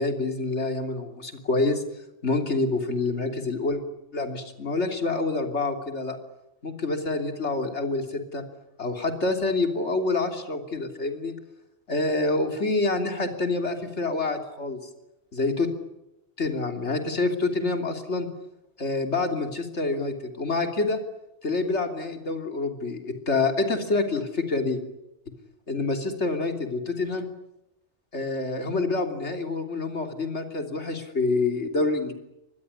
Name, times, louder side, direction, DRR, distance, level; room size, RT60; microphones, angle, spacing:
voice 1, 0.0-1.8 2.2-3.8 4.1-6.2 6.6-8.4 8.8-11.4 11.9-14.8 15.3-15.7 16.4-18.3 18.8-21.0 21.4-24.8 25.7-27.3 28.1-32.1, left 3 dB, 80° left, 5 dB, 3.4 m, -27 dB
24.5 x 21.0 x 10.0 m, 0.88 s
omnidirectional pair, 1.2 m